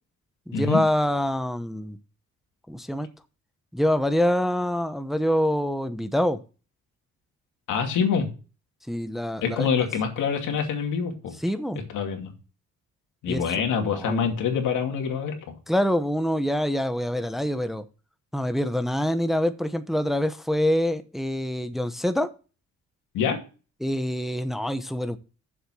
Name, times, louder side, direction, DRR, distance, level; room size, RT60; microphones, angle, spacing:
voice 1, 0.5-2.0 2.7-3.1 3.7-6.4 8.9-9.7 11.4-11.8 13.3-13.4 13.8-14.3 15.7-17.8 18.3-22.3 23.8-25.2, equal, ahead, 10 dB, 0.9 m, -25 dB
voice 2, 7.7-8.3 9.4-11.3 11.9-12.3 13.2-15.3 23.1-23.4, left 6 dB, 85° left, 3 dB, 2.5 m, -25 dB
7.3 x 7.1 x 6.2 m, 0.35 s
cardioid pair, 90°, 30 cm